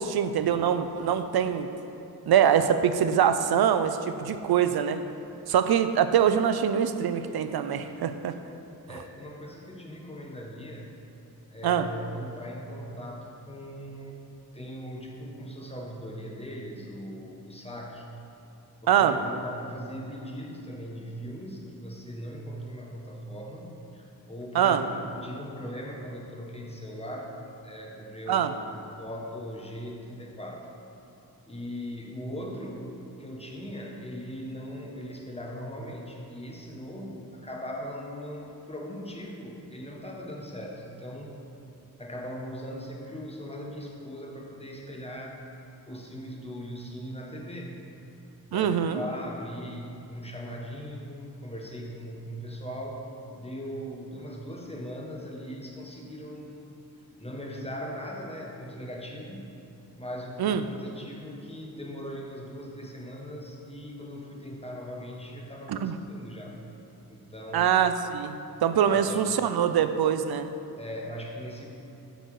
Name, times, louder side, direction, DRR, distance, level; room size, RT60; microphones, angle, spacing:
voice 1, 0.0-1.7 2.3-5.0 5.5-8.3 11.6-11.9 18.9-19.1 24.5-24.8 28.3-28.5 48.5-49.0 60.4-60.6 65.7-65.9 67.5-68.4 68.6-70.5, right 8 dB, 75° right, 10 dB, 0.5 m, -24 dB
voice 2, 8.9-11.0 11.5-14.2 14.5-18.1 18.8-30.7 31.5-41.4 42.0-45.4 45.9-47.9 48.5-53.0 53.3-56.8 57.2-59.5 60.0-66.6 67.1-67.7 68.9-69.2 70.8-71.7, equal, 15° left, 0 dB, 1.2 m, -39 dB
7.7 x 4.1 x 6.4 m, 3.0 s
cardioid pair, 65°, 38 cm